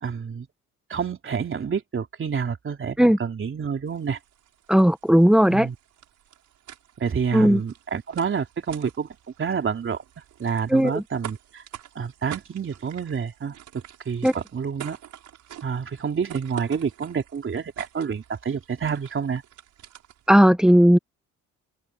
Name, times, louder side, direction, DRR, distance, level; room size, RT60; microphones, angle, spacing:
voice 1, 0.0-0.5 0.9-4.2 5.5-5.7 7.0-9.1 9.4-10.0 10.4-11.6 11.9-13.6 14.0-15.0 15.6-19.4, right 6 dB, 45° right, 3.3 m, -28 dB
sound 1, 3.9-20.4, right 11 dB, 75° right, 7.2 m, -46 dB
voice 2, 4.7-5.7 7.3-7.6 10.7-11.0 14.2-14.3 20.3-21.0, equal, ahead, 1.5 m, -16 dB
open air
cardioid pair, 90°, 30 cm